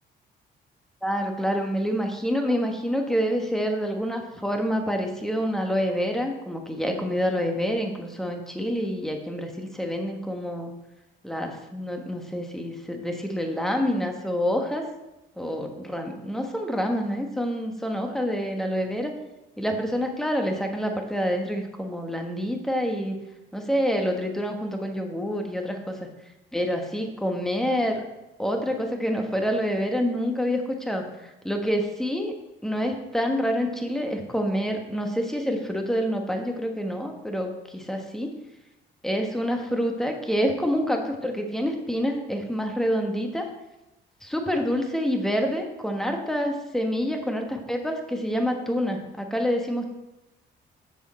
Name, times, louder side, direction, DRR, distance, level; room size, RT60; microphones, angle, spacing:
voice 1, 1.0-10.7 11.2-14.9 15.4-19.1 19.6-23.2 23.5-26.1 26.5-28.0 28.4-32.4 32.6-38.3 39.0-43.5 44.2-49.9, equal, ahead, 3 dB, 1.3 m, -27 dB
7.6 x 6.8 x 4.3 m, 0.98 s
cardioid pair, 90°, 20 cm